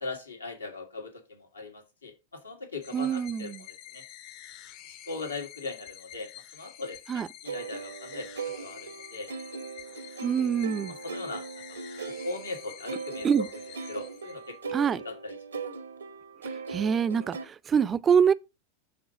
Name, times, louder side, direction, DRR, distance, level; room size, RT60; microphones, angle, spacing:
voice 1, 0.0-4.0 4.9-8.3 8.6-9.3 11.0-11.4 11.7-11.8 12.2-13.3 13.9-14.7 15.0-15.4, left 3 dB, 85° left, 1.8 m, -39 dB
sound 1, 2.8-14.7, left 12 dB, 50° left, 0.8 m, -48 dB
voice 2, 2.9-3.6 7.1-7.3 10.2-10.9 13.2-13.5 14.7-15.0 16.7-18.3, right 7 dB, 25° right, 0.4 m, -25 dB
sound 2, 7.5-17.5, right 5 dB, 80° right, 0.8 m, -39 dB
6.9 x 3.9 x 5.0 m
figure-of-eight pair, 90°, 0 cm